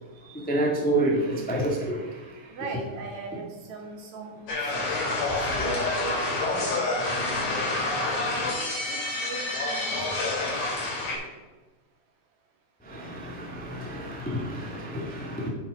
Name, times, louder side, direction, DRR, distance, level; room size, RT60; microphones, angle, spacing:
voice 1, 0.2-2.5 12.8-15.5, right 1 dB, 10° left, -1 dB, 0.4 m, -29 dB
voice 2, 2.5-4.9 5.5-6.2 6.6-8.4 8.9-10.3, right 4 dB, 65° right, 1 dB, 2.8 m, -39 dB
sound 1, 4.5-11.2, left 2 dB, 70° left, 4.4 m, -28 dB
9.1 x 7.1 x 5.0 m, 1.2 s
omnidirectional pair, 3.6 m